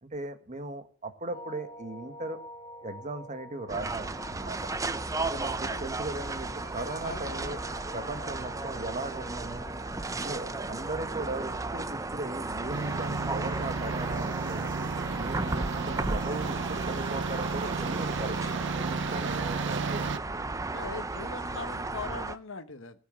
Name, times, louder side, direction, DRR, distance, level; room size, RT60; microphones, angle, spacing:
voice 1, 0.0-2.4 2.8-4.7 5.2-7.6 7.9-9.6 10.2-14.7 15.1-20.2, right 2 dB, 35° right, 8 dB, 1.7 m, -38 dB
sound 1, 1.3-12.2, left 1 dB, 30° left, 4.7 m, -48 dB
sound 2, 3.7-22.4, right 3 dB, 15° right, 0.6 m, -34 dB
voice 2, 5.7-6.0 7.0-7.5 20.6-23.0, left 4 dB, 70° left, 11 dB, 1.2 m, -41 dB
sound 3, 12.7-20.2, right 4 dB, 65° right, 0.6 m, -33 dB
17.5 x 7.3 x 7.7 m, 0.43 s
head